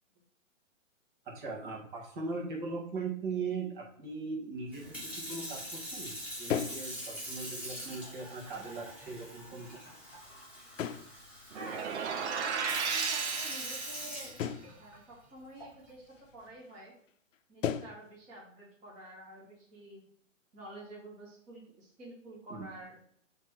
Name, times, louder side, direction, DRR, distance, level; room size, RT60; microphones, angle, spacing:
voice 1, 1.3-4.8 5.3-6.1 6.4-9.7 22.5-22.7, right 4 dB, 40° right, -1 dB, 2.0 m, -39 dB
Sink (filling or washing) / Fill (with liquid), 4.7-14.9 15.6-15.9, equal, 5° right, 1.7 m, -43 dB
sound 1, 5.1-5.2 5.5-5.6 6.1-6.2 6.5-6.9 7.4-7.5 8.3-8.7 9.3-10.4 10.8-11.3 11.9-12.1 12.8-12.9 14.4-14.8 15.6-15.7 16.1-16.3 16.6-16.8 17.1-17.4 17.6-18.0, left 8 dB, 70° left, 0.6 m, -37 dB
voice 2, 11.5-14.3 14.8-16.9 17.5-20.0 20.5-23.0, right 1 dB, 20° right, -7 dB, 1.5 m, -49 dB
sound 2, 11.5-14.3, right 6 dB, 60° right, 0.8 m, -34 dB
5.7 x 3.5 x 4.7 m, 0.66 s
hypercardioid pair, 150°, 39 cm